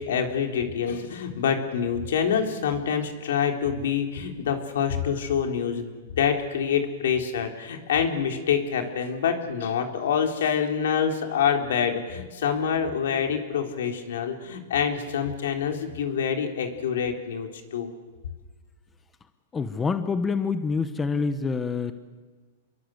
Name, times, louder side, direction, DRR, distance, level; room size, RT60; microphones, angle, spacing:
voice 1, 0.0-17.9, left 7 dB, 80° left, 4 dB, 4.1 m, -26 dB
voice 2, 19.5-21.9, left 5 dB, 15° left, 10 dB, 1.2 m, -26 dB
28.5 x 22.5 x 8.0 m, 1.4 s
hypercardioid pair, 145°, 0 cm